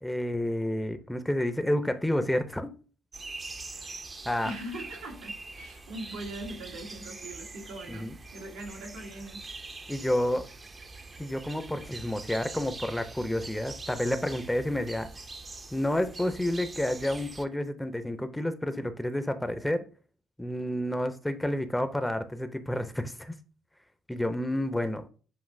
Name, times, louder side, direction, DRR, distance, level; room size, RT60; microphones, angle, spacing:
voice 1, 0.0-2.7 4.3-4.5 7.9-8.1 9.9-10.5 11.2-15.1 15.7-19.8 20.4-23.3 24.1-25.0, left 1 dB, 10° left, 0.6 m, -30 dB
sound 1, 3.1-17.4, right 3 dB, 35° right, 0.6 m, -44 dB
voice 2, 4.4-9.4, right 1 dB, 85° right, 1.3 m, -41 dB
7.3 x 2.7 x 2.6 m
supercardioid pair, 65°, 0 cm